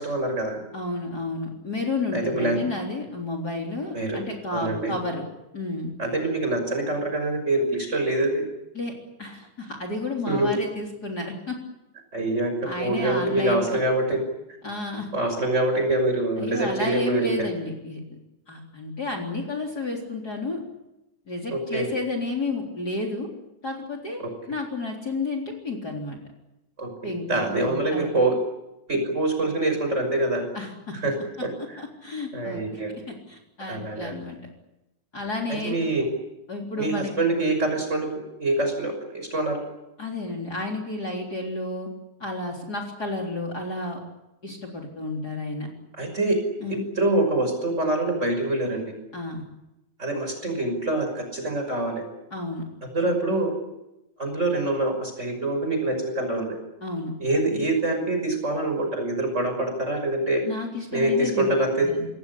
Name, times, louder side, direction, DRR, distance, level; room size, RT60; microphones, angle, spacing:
voice 1, 0.0-0.6 2.1-2.6 3.9-4.2 4.5-4.9 6.0-8.4 10.3-10.5 12.1-14.2 15.1-17.5 21.5-21.9 24.2-24.3 26.8-28.4 28.9-30.4 30.9-31.1 31.4-31.8 32.3-32.9 33.7-34.1 35.5-36.1 36.8-38.1 38.4-39.6 46.0-46.4 46.7-48.9 50.0-52.0 52.9-53.5 54.2-56.6 57.2-60.4 60.9-61.9, right 2 dB, 20° right, 5 dB, 6.1 m, -25 dB
voice 2, 0.7-5.2 5.5-5.9 8.7-8.9 9.2-11.6 12.6-13.7 14.6-15.1 16.4-18.0 18.5-20.6 21.3-23.3 23.6-26.2 27.0-28.1 30.5-31.0 31.8-32.8 33.1-34.4 35.1-35.8 36.5-37.1 40.0-41.9 42.2-44.0 44.4-45.7 46.6-46.8 49.1-49.4 52.3-52.7 56.8-57.1 60.5-61.5 61.8-62.1, left 2 dB, 30° left, 0 dB, 4.2 m, -31 dB
26.5 x 19.0 x 10.0 m, 0.95 s
omnidirectional pair, 3.4 m